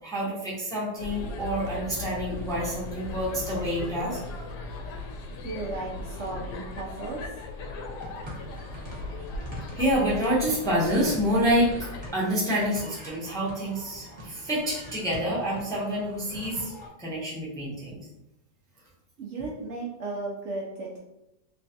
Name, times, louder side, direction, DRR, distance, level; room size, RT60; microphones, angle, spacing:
voice 1, 0.0-4.2 9.7-16.7 17.0-18.0, equal, 5° left, -6 dB, 0.5 m, -27 dB
sound 1, 1.0-12.1, left 3 dB, 75° left, 1.1 m, -38 dB
voice 2, 5.4-7.4 19.2-21.0, right 3 dB, 70° right, -3 dB, 0.7 m, -35 dB
sound 2, 8.0-16.9, equal, 20° right, 0.8 m, -44 dB
3.2 x 3.1 x 2.8 m, 0.89 s
omnidirectional pair, 1.9 m